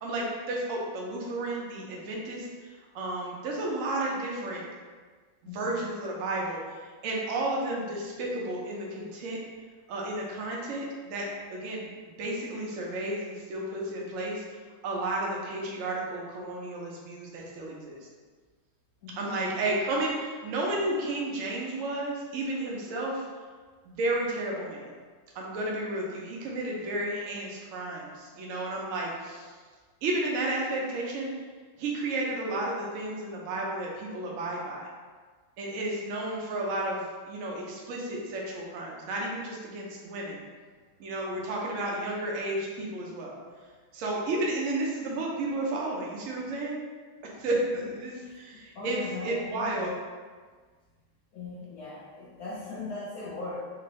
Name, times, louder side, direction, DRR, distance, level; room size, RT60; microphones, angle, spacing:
voice 1, 0.0-4.7 5.5-9.4 9.9-14.4 14.8-18.0 19.2-23.3 23.8-24.9 25.3-29.5 30.0-31.3 31.8-34.9 35.6-40.4 41.0-43.4 43.9-46.8 47.2-49.9, right 2 dB, 65° right, -3 dB, 0.7 m, -32 dB
voice 2, 5.4-5.8 19.0-19.5 47.5-47.6 48.2-49.8 51.3-53.6, left 3 dB, 80° left, -6 dB, 0.8 m, -40 dB
3.6 x 2.6 x 3.1 m, 1.5 s
omnidirectional pair, 2.2 m